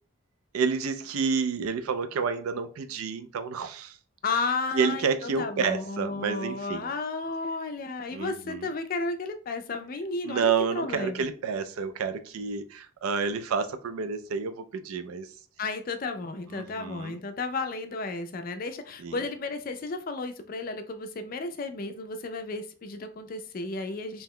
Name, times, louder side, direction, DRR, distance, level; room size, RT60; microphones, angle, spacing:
voice 1, 0.5-4.0 4.7-6.9 8.1-8.7 10.2-15.3 16.5-17.2 19.0-19.2, right 5 dB, 85° right, 0.4 m, -29 dB
voice 2, 4.2-11.3 15.6-24.2, left 3 dB, 40° left, 0.4 m, -33 dB
2.8 x 2.1 x 3.6 m
head